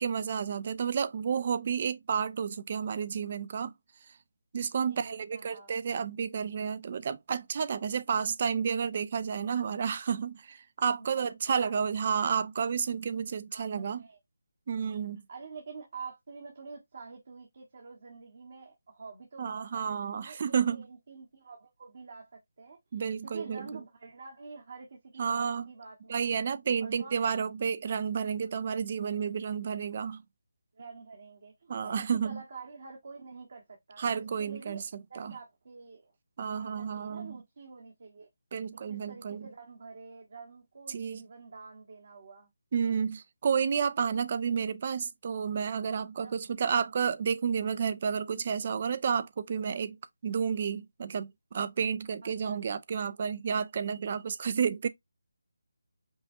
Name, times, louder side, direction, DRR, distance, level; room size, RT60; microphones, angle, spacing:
voice 1, 0.0-3.7 4.5-14.0 14.7-15.2 19.4-20.8 22.9-23.8 25.2-25.7 26.1-30.2 31.7-32.4 34.0-34.8 35.2-35.4 36.4-37.3 38.5-39.5 40.9-41.2 42.7-50.0 50.2-54.9, right 6 dB, 35° right, 0.4 m, -31 dB
voice 2, 4.9-5.7 11.0-11.3 11.6-11.7 13.5-14.2 15.3-20.0 20.2-22.8 23.2-26.1 26.8-27.2 30.7-34.0 34.4-34.8 35.1-36.1 36.5-38.3 38.9-42.5 46.2-46.4 52.2-52.8, right 4 dB, 55° right, 1.3 m, -47 dB
5.4 x 2.3 x 2.6 m
figure-of-eight pair, 165°, 0 cm